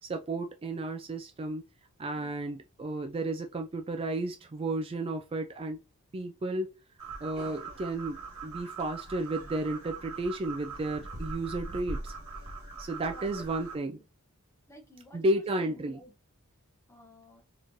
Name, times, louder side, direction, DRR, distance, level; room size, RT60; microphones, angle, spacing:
voice 1, 0.0-1.6 2.0-5.8 6.1-6.7 7.2-12.1 12.8-14.0 15.1-16.0, right 2 dB, 25° right, 0.3 m, -33 dB
sound 1, 7.0-13.8, right 3 dB, 65° right, 1.4 m, -41 dB
voice 2, 13.1-13.4 13.8-14.0 14.7-16.1 16.9-17.4, left 1 dB, 15° left, 1.0 m, -52 dB
4.2 x 3.0 x 2.7 m
head